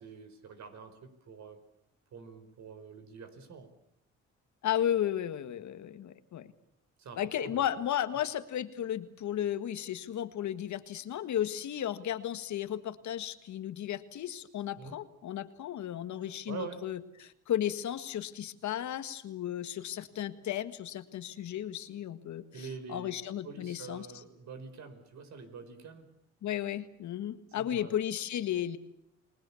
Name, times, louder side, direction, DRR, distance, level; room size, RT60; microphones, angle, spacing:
voice 1, 0.0-1.6 2.1-3.7 7.0-7.7 14.8-15.0 16.5-16.8 22.5-23.2 23.4-26.1 27.5-28.0, right 5 dB, 65° right, 9 dB, 4.7 m, -45 dB
voice 2, 4.6-6.5 7.2-24.1 26.4-28.8, left 11 dB, 70° left, 11 dB, 1.7 m, -34 dB
30.0 x 20.0 x 7.1 m, 0.76 s
cardioid pair, 90°, 30 cm